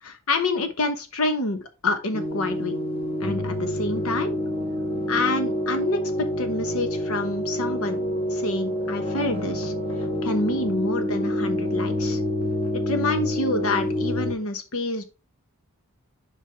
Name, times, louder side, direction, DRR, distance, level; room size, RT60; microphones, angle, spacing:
voice 1, 0.0-2.8 3.2-4.4 5.1-9.7 10.2-12.2 12.9-15.0, left 2 dB, 80° left, 8 dB, 1.1 m, -27 dB
sound 1, 2.1-14.3, equal, 25° left, 2.1 m, -27 dB
7.7 x 5.3 x 3.4 m, 0.30 s
head